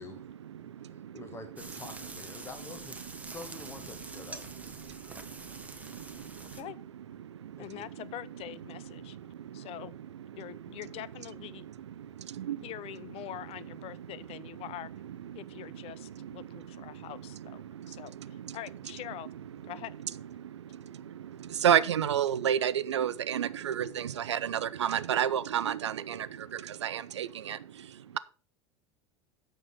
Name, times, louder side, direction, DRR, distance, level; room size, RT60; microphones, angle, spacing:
voice 1, 0.0-2.1 2.4-2.5 3.1-3.4 3.9-6.7 7.2-8.1 8.7-11.1 11.5-12.7 13.2-13.3 13.8-18.6 18.8-20.1 20.4-28.2, right 9 dB, 75° right, 0.6 m, -34 dB
voice 2, 0.9-4.5 7.6-7.9, left 3 dB, 15° left, 1.5 m, -47 dB
sound 1, 1.6-6.6, right 3 dB, 10° right, 1.2 m, -46 dB
voice 3, 7.6-9.2 9.5-9.9 10.4-11.7 12.6-14.9 15.3-19.3 19.7-20.0, left 13 dB, 40° left, 0.7 m, -44 dB
8.9 x 6.5 x 5.9 m
figure-of-eight pair, 75°, 15 cm